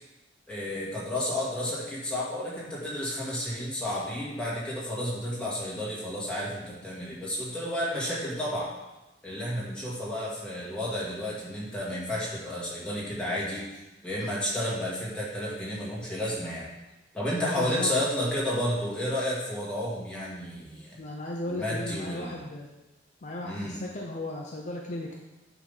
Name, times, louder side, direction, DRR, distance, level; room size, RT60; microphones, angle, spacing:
voice 1, 0.5-8.7 9.2-13.7 14.0-16.7 17.1-21.0 21.5-22.5 23.4-23.8, left 1 dB, 5° left, -7 dB, 2.1 m, -31 dB
voice 2, 17.6-17.9 21.0-22.7 23.2-25.2, left 1 dB, 40° left, 0 dB, 0.7 m, -36 dB
9.3 x 3.7 x 5.5 m, 1.0 s
head